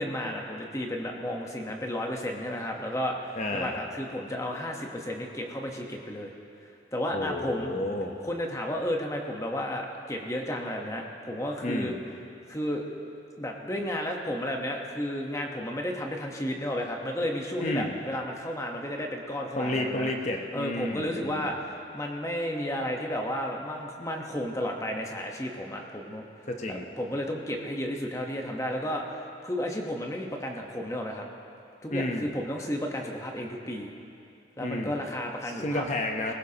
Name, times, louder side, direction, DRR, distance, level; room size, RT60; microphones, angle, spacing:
voice 1, 0.0-6.3 6.9-7.7 8.2-11.9 12.5-12.9 13.4-20.1 20.5-26.3 26.7-29.0 29.4-31.2 31.8-33.9 34.6-35.9 36.3-36.4, left 1 dB, 15° left, 1 dB, 1.1 m, -32 dB
voice 2, 3.4-3.8 7.1-8.2 11.6-12.0 17.6-17.9 19.6-21.5 26.5-26.9 31.9-32.3 34.6-35.0 35.4-36.3, left 1 dB, 40° left, 2 dB, 0.9 m, -31 dB
20.0 x 16.5 x 2.9 m, 2.6 s
head